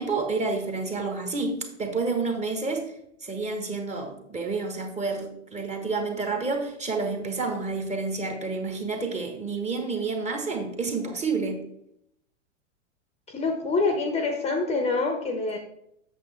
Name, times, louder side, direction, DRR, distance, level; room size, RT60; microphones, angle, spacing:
voice 1, 0.0-2.9 3.2-11.6, right 4 dB, 20° right, 4 dB, 1.3 m, -29 dB
voice 2, 13.3-15.6, left 3 dB, 15° left, 5 dB, 0.9 m, -26 dB
8.2 x 6.8 x 3.3 m, 0.76 s
figure-of-eight pair, 95°, 38 cm